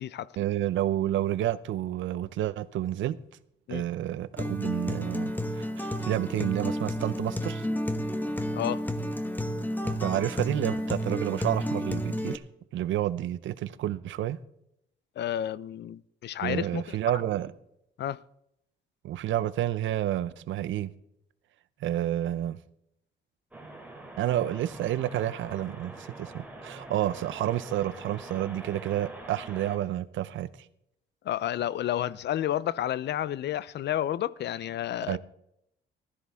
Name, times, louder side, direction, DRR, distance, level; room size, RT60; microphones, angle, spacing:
voice 1, 0.4-3.2 3.7-7.7 9.8-12.4 12.7-14.4 16.4-17.5 19.0-20.9 21.8-22.6 24.2-30.5 35.1-35.2, right 13 dB, 75° right, 0.6 m, -30 dB
Acoustic guitar, 4.4-12.4, equal, 10° left, 1.1 m, -31 dB
voice 2, 15.2-17.0 18.0-18.2 31.3-35.2, left 11 dB, 60° left, 0.5 m, -31 dB
sound 1, 23.5-29.8, right 2 dB, 5° right, 3.0 m, -45 dB
15.5 x 13.0 x 3.5 m
cardioid pair, 90°, 20 cm